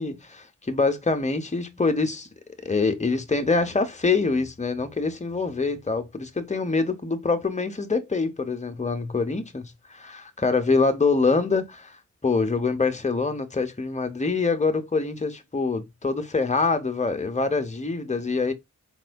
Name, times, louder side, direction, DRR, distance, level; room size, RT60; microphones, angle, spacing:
voice 1, 0.0-2.3 2.6-9.6 9.9-12.0 12.2-18.5, left 4 dB, 25° left, 0.8 m, -25 dB
4.3 x 4.1 x 2.3 m
wide cardioid pair, 60°, 30 cm